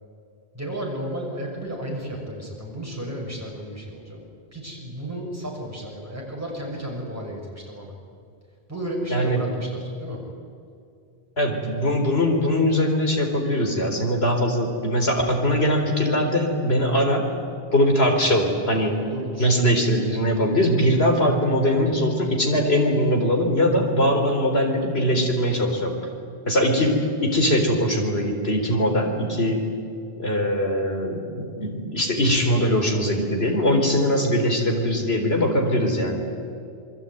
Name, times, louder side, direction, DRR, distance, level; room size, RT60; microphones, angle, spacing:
voice 1, 0.5-4.2 4.5-7.9 8.7-10.2 19.0-19.5 26.6-26.9, right 1 dB, 15° right, -2 dB, 6.4 m, -33 dB
voice 2, 9.1-9.4 11.4-17.3 17.7-18.9 19.4-26.0 26.5-27.0 27.2-29.6 30.2-36.2, equal, 80° left, 3 dB, 4.3 m, -21 dB
27.5 x 21.5 x 9.2 m, 2.5 s
omnidirectional pair, 1.0 m